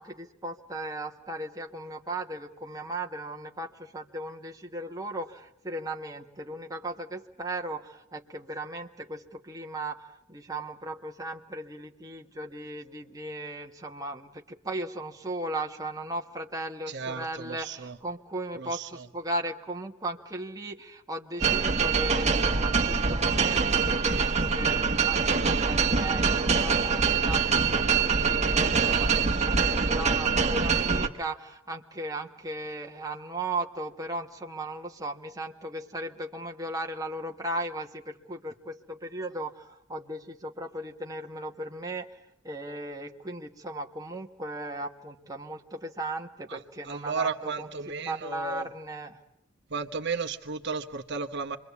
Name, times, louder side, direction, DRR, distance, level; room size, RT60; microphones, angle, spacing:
voice 1, 0.0-42.1 42.4-47.7 48.0-49.2, right 1 dB, 20° right, 1 dB, 1.4 m, -37 dB
voice 2, 16.9-18.0 18.6-18.9 46.5-46.6 46.9-48.6 49.7-51.6, right 4 dB, 60° right, 7 dB, 1.2 m, -34 dB
sound 1, 21.4-31.1, right 5 dB, 35° right, 1.5 m, -24 dB
27.5 x 22.5 x 8.3 m, 0.79 s
head